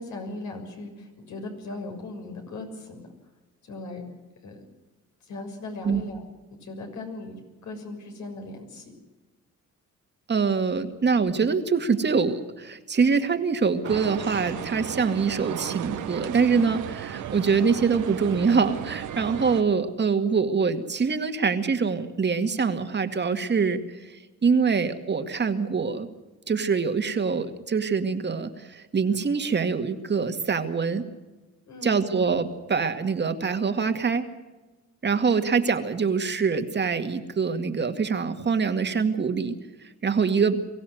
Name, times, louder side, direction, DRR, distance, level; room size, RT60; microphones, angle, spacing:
voice 1, 0.0-3.0 3.6-4.0 4.4-4.6 5.3-6.2 6.6-7.4 7.6-8.9 18.0-18.1 31.7-32.0, left 2 dB, 70° left, 3 dB, 6.5 m, -38 dB
voice 2, 10.3-23.8 24.4-26.1 26.5-31.0 31.8-34.2 35.0-39.6 40.0-40.6, right 5 dB, 35° right, 7 dB, 2.1 m, -24 dB
sound 1, 13.8-19.6, right 10 dB, 75° right, 1.5 m, -35 dB
24.0 x 15.5 x 7.9 m, 1.2 s
cardioid pair, 90°, 30 cm